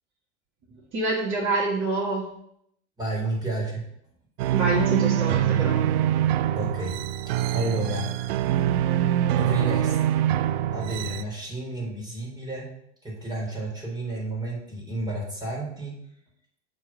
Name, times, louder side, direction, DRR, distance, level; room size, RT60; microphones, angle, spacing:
voice 1, 0.9-2.2 4.5-5.8, right 2 dB, 35° right, -5 dB, 1.9 m, -26 dB
voice 2, 3.0-3.9 6.5-7.0 7.3-8.1 9.3-10.0 10.7-12.7 13.0-16.0, right 2 dB, 10° right, -3 dB, 3.4 m, -31 dB
sound 1, 4.4-11.2, right 11 dB, 60° right, 0.5 m, -24 dB
7.2 x 4.1 x 5.8 m, 0.73 s
hypercardioid pair, 100°, 35 cm